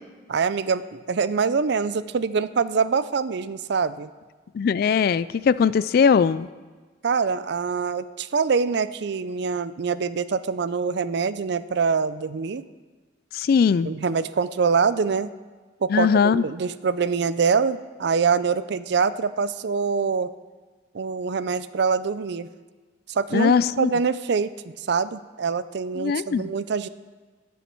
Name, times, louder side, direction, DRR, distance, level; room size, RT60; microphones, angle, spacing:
voice 1, 0.3-4.1 7.0-12.6 13.8-15.3 15.8-20.3 20.9-22.5 23.1-23.5 23.8-24.5 24.9-26.9, right 5 dB, 60° right, 15 dB, 0.4 m, -24 dB
voice 2, 4.5-6.5 13.3-13.9 15.9-16.4 23.3-23.9 26.0-26.5, left 6 dB, 50° left, 17 dB, 0.3 m, -20 dB
20.0 x 7.1 x 4.5 m, 1.3 s
head